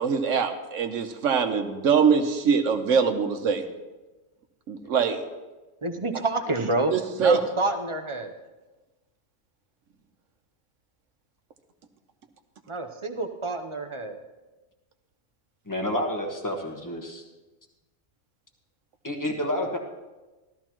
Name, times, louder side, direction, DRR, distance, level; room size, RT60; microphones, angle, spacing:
voice 1, 0.0-3.6 4.7-5.2 6.9-7.4, right 6 dB, 85° right, 6 dB, 1.2 m, -23 dB
voice 2, 5.8-6.9 7.2-8.3 12.7-14.2, right 2 dB, 30° right, 6 dB, 0.6 m, -28 dB
voice 3, 15.7-17.2 19.0-19.8, left 1 dB, 15° left, 2 dB, 1.2 m, -29 dB
14.5 x 13.0 x 3.0 m, 1.2 s
omnidirectional pair, 1.3 m